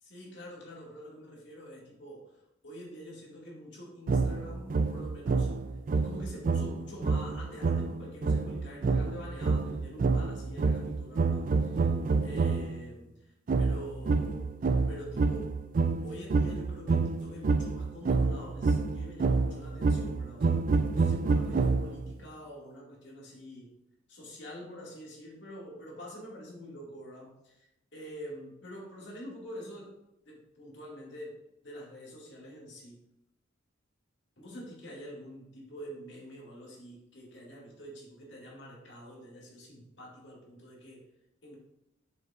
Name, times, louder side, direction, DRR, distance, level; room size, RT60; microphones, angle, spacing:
voice 1, 0.0-2.4 2.6-5.5 6.0-11.9 12.2-14.5 14.9-15.6 16.0-23.7 24.1-29.9 30.3-33.0 34.4-41.1 41.4-41.6, equal, 60° left, -3 dB, 2.2 m, -46 dB
sound 1, 4.1-12.8 13.5-22.1, right 4 dB, 45° right, 0.3 m, -28 dB
7.0 x 6.8 x 2.5 m, 0.87 s
head